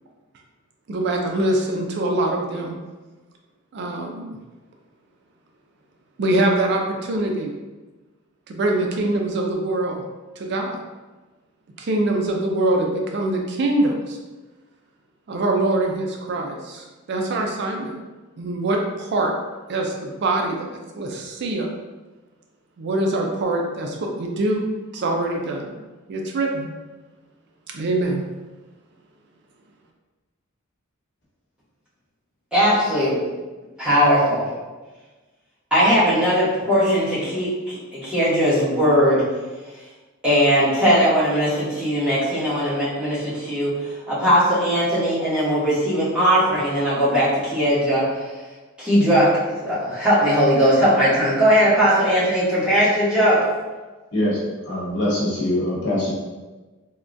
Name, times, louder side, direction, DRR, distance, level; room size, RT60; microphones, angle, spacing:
voice 1, 0.9-2.8 3.7-4.3 6.2-7.5 8.5-10.0 10.4-10.8 11.8-14.2 15.3-18.0 18.4-19.3 19.7-20.7 21.0-21.7 22.8-24.6 24.9-25.7 26.1-26.7 27.7-28.2, right 2 dB, 55° right, 1 dB, 0.4 m, -23 dB
voice 2, 32.5-33.2 33.8-34.5 35.7-39.2 40.2-48.0 48.8-49.3 49.6-53.4, equal, 5° right, -11 dB, 1.1 m, -19 dB
voice 3, 54.7-56.1, left 1 dB, 55° left, -7 dB, 1.1 m, -23 dB
3.6 x 2.2 x 2.5 m, 1.2 s
head